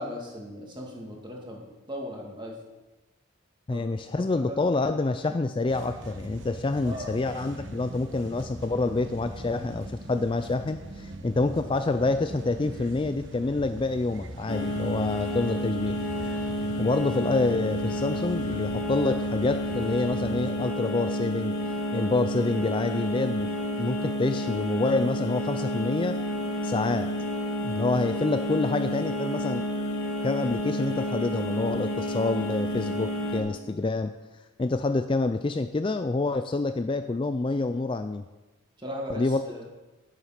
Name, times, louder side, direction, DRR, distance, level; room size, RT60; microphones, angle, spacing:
voice 1, 0.0-1.6 1.9-2.5 3.7-3.9 4.3-4.7 6.8-7.1 38.8-39.6, equal, 20° right, -1 dB, 2.1 m, -37 dB
voice 2, 3.7-16.0 16.8-21.5 21.9-23.5 23.8-26.2 26.6-27.1 27.6-29.6 30.2-34.1 34.6-38.2 39.1-39.4, left 3 dB, 25° left, 9 dB, 0.3 m, -27 dB
sound 1, 5.7-20.5, right 1 dB, 65° right, 1.2 m, -41 dB
sound 2, 14.5-33.4, equal, 80° left, 2.1 m, -30 dB
10.0 x 9.0 x 5.9 m, 1.1 s
head